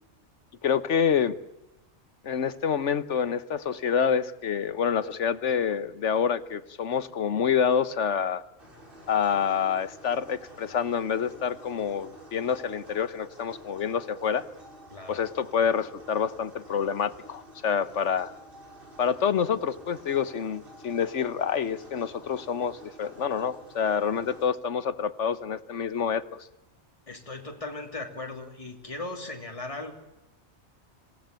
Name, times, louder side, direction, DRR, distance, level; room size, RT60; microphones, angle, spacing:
voice 1, 0.6-1.3 2.2-8.4 9.1-14.5 15.1-18.3 19.0-26.5, left 7 dB, 85° left, 14 dB, 1.4 m, -27 dB
sound 1, 8.6-24.5, right 1 dB, 50° right, 5.9 m, -50 dB
voice 2, 27.1-29.9, left 2 dB, 30° left, 2 dB, 3.0 m, -37 dB
26.5 x 17.5 x 9.0 m, 0.98 s
omnidirectional pair, 1.2 m